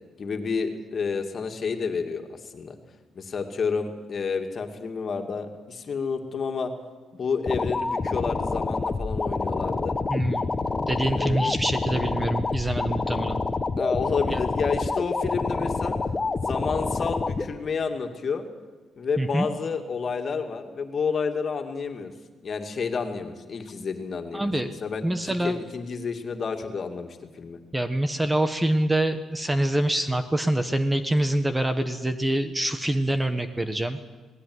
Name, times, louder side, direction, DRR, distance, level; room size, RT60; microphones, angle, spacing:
voice 1, 0.2-2.7 3.2-6.7 7.1-10.0 11.1-11.6 13.8-15.9 16.4-18.5 19.0-22.1 22.4-24.5 24.8-27.6, left 5 dB, 45° left, 5 dB, 2.6 m, -30 dB
sound 1, 7.5-17.5, left 3 dB, 25° left, 1.3 m, -27 dB
voice 2, 10.1-10.5 10.9-13.4 14.3-14.4 19.2-19.5 24.3-24.8 25.0-25.6 27.7-34.0, right 1 dB, 10° right, 10 dB, 1.4 m, -25 dB
19.0 x 16.0 x 9.8 m, 1.3 s
cardioid pair, 90°, 0 cm